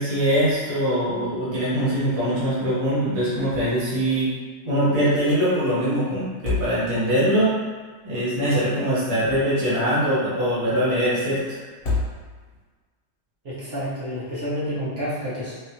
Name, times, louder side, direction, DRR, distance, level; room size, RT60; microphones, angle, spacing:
voice 1, 0.0-4.3 4.6-7.5 8.0-11.6, equal, 30° right, -9 dB, 0.8 m, -22 dB
sound 1, 3.5-4.0 4.3-4.4 6.2-7.2 8.9-9.8 11.7-12.6, left 3 dB, 60° left, 1.1 m, -30 dB
voice 2, 13.4-15.5, equal, 55° right, -9 dB, 1.2 m, -29 dB
3.3 x 2.4 x 2.8 m, 1.4 s
omnidirectional pair, 1.3 m